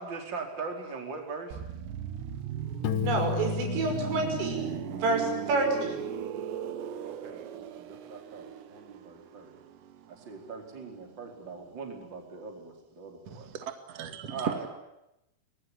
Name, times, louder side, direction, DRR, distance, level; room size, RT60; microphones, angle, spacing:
voice 1, 0.0-1.6 7.0-9.6 10.1-13.5 14.3-14.7, right 4 dB, 25° right, 3 dB, 4.4 m, -41 dB
sound 1, 1.5-11.2 11.4-11.7, right 10 dB, 70° right, 3.3 m, -38 dB
Piano, 2.8-5.6, left 11 dB, 85° left, 1.8 m, -34 dB
voice 2, 3.0-4.6 4.9-6.0, right 3 dB, 85° right, 4 dB, 8.4 m, -28 dB
voice 3, 13.3-14.7, right 7 dB, 45° right, 7 dB, 2.4 m, -37 dB
27.0 x 21.0 x 9.9 m, 0.88 s
omnidirectional pair, 5.7 m